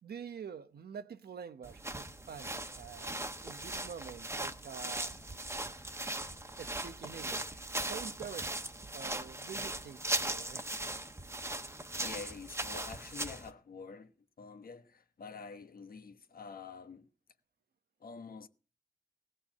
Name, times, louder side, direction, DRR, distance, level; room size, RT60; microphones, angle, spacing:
voice 1, 0.0-5.1 6.6-8.6 8.9-10.7 12.0-12.1, right 7 dB, 85° right, 1.0 m, -47 dB
sound 1, 1.6-13.5, right 1 dB, 15° right, 1.2 m, -39 dB
voice 2, 12.0-14.1 14.4-17.1 18.0-18.5, left 5 dB, 70° left, 1.3 m, -47 dB
17.5 x 6.8 x 7.6 m
wide cardioid pair, 105°, 16 cm